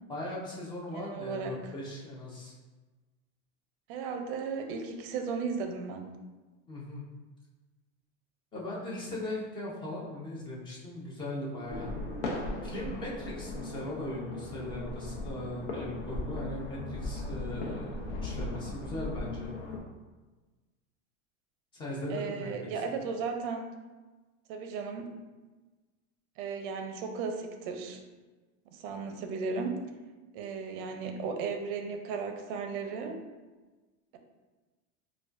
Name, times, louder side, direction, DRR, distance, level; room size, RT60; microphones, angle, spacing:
voice 1, 0.1-2.5 6.7-7.0 8.5-11.9 12.6-19.5 21.7-22.5 22.8-22.9, left 1 dB, 15° left, -4 dB, 0.4 m, -39 dB
voice 2, 0.9-1.7 3.9-6.1 22.1-23.7 24.5-25.1 26.4-28.0 28.7-29.8 30.3-33.2, right 5 dB, 50° right, 5 dB, 0.5 m, -35 dB
sound 1, 11.7-19.8, left 2 dB, 80° left, 0.8 m, -37 dB
4.7 x 2.2 x 2.4 m, 1.3 s
supercardioid pair, 155°, 35 cm